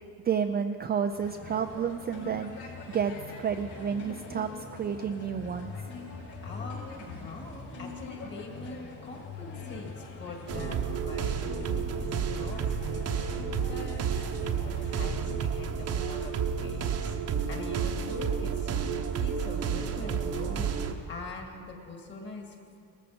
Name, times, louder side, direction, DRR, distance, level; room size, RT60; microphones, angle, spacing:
voice 1, 0.2-3.1 3.4-5.7, right 7 dB, 25° right, 6 dB, 0.4 m, -30 dB
sound 1, 1.2-15.4, left 4 dB, 55° left, 4.9 m, -43 dB
voice 2, 6.4-12.1 12.4-14.1 14.4-17.2 17.5-22.8, left 3 dB, 30° left, 2 dB, 2.3 m, -44 dB
sound 2, 10.5-20.9, right 7 dB, 40° right, 1.0 m, -31 dB
19.0 x 14.0 x 5.1 m, 2.7 s
cardioid pair, 150°, 37 cm